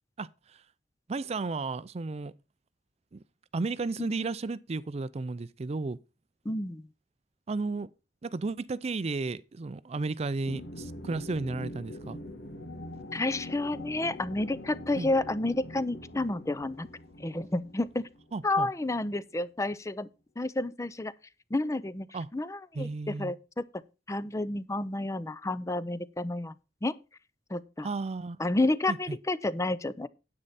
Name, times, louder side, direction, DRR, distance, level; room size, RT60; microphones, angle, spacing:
voice 1, 0.2-0.6 1.1-2.3 3.1-3.2 3.5-6.0 7.5-7.9 8.2-12.2 15.0-15.1 18.3-18.7 22.1-22.3 22.7-23.3 27.8-28.4 28.9-29.2, right 3 dB, 35° right, 0.4 m, -33 dB
voice 2, 6.5-6.9 13.1-16.9 17.2-18.1 18.4-20.1 20.4-21.1 21.5-22.1 22.3-23.6 24.1-26.5 26.8-26.9 27.5-27.9 28.4-30.1, left 2 dB, 15° left, 0.5 m, -30 dB
sound 1, 10.4-19.0, left 1 dB, 90° left, 1.9 m, -44 dB
9.8 x 8.7 x 4.1 m
head